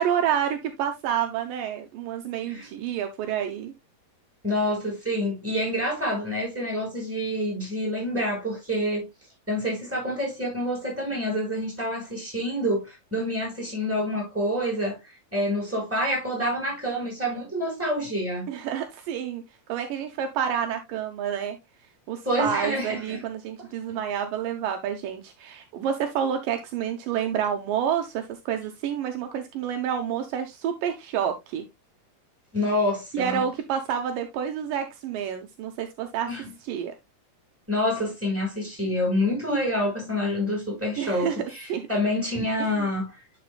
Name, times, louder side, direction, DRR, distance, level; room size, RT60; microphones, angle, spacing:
voice 1, 0.0-3.7 18.5-19.4 19.7-21.6 22.1-31.6 33.1-36.3 36.7-36.9 41.0-41.4 41.7-41.8 42.6-42.9, right 8 dB, 80° right, 2.5 m, -29 dB
voice 2, 4.4-9.1 9.5-18.5 22.2-23.2 32.5-33.4 36.3-36.5 37.7-43.1, left 1 dB, 5° right, 5.3 m, -27 dB
10.0 x 6.1 x 2.3 m
omnidirectional pair, 4.0 m